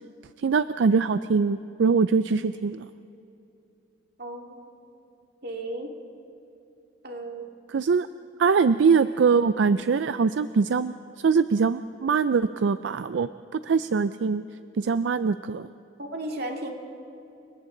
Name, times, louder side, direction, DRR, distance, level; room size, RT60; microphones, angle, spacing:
voice 1, 0.4-2.8 7.7-8.1 8.4-11.0 11.2-13.3 13.6-14.4 14.8-15.7, right 5 dB, 80° right, 13 dB, 0.4 m, -22 dB
voice 2, 4.2-4.9 5.4-5.9 7.0-7.6 16.0-16.7, right 1 dB, 60° right, 2 dB, 2.3 m, -35 dB
29.5 x 23.5 x 3.9 m, 2.8 s
head